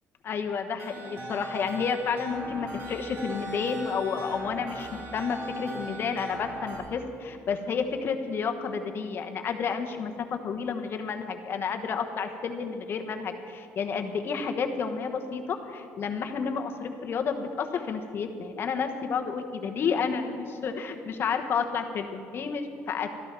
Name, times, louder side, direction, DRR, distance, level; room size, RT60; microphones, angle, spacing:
voice 1, 0.2-23.1, left 6 dB, 45° left, 6 dB, 1.2 m, -31 dB
sound 1, 0.8-6.8, right 1 dB, 55° right, 3.4 m, -38 dB
13.0 x 12.5 x 6.0 m, 2.4 s
cardioid pair, 125°, 5 cm